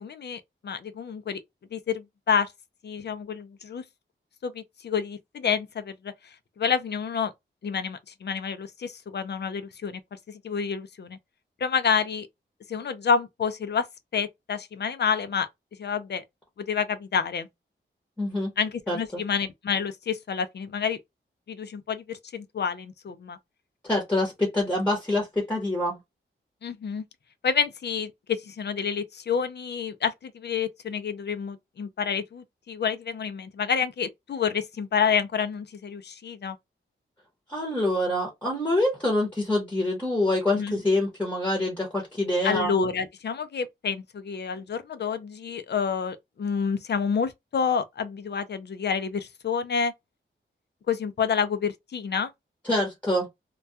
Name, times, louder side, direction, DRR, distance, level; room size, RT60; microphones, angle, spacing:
voice 1, 0.0-1.4 1.7-2.5 2.8-3.8 4.4-6.1 6.6-7.3 7.6-11.2 11.6-12.3 12.7-13.9 14.1-15.5 15.8-16.2 16.6-17.5 18.6-21.0 21.5-23.4 26.6-27.0 27.4-36.6 40.5-40.8 42.4-49.9 50.9-52.3, left 6 dB, 55° left, 0.4 m, -28 dB
voice 2, 18.2-18.5 18.9-19.0 23.8-26.0 37.5-42.7 52.7-53.3, left 1 dB, 10° left, 0.8 m, -25 dB
2.3 x 2.2 x 2.6 m
wide cardioid pair, 140°, 21 cm